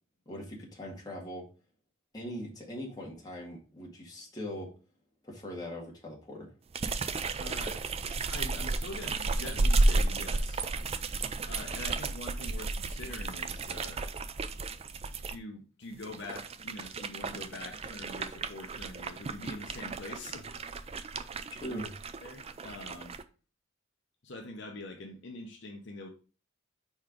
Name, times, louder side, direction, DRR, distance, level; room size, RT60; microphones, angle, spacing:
voice 1, 0.3-1.5 2.1-4.7 5.2-6.5 21.6-21.9, equal, 20° left, 1.9 m, -41 dB
sound 1, 6.7-15.4 15.9-23.2, right 3 dB, 30° right, 0.4 m, -33 dB
voice 2, 7.4-7.9 8.3-10.7 11.5-14.1 15.3-20.6 21.7-21.9 22.2-23.2 24.2-26.1, left 2 dB, 60° left, 0.9 m, -44 dB
4.7 x 4.4 x 5.0 m
head